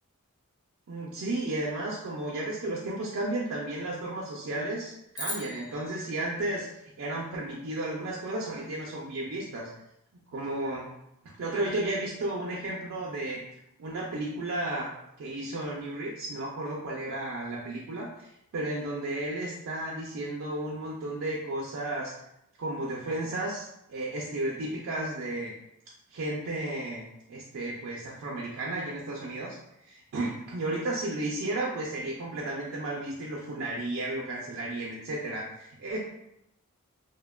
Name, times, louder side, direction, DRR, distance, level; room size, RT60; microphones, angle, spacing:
voice 1, 0.9-6.7 7.0-9.7 10.3-10.9 11.2-13.4 13.8-14.9 15.2-22.1 22.6-25.5 26.1-27.0 27.3-29.6 29.8-36.0, right 1 dB, 70° right, -3 dB, 0.4 m, -33 dB
sound 1, 5.1-7.6, left 1 dB, 20° left, 0.4 m, -41 dB
2.7 x 2.1 x 2.2 m, 0.81 s
head